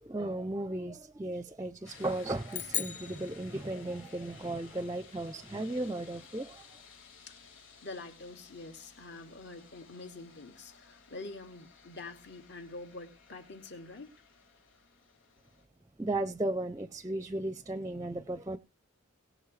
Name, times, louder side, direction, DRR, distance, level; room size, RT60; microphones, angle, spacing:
voice 1, 0.0-6.8 16.0-18.6, right 1 dB, 15° right, 0.5 m, -35 dB
sound 1, 1.8-15.6, left 5 dB, 70° left, 4.3 m, -56 dB
sound 2, 2.5-4.2, left 10 dB, 35° left, 0.6 m, -38 dB
voice 2, 7.8-14.1, left 3 dB, 55° left, 2.2 m, -46 dB
22.0 x 7.6 x 3.2 m
head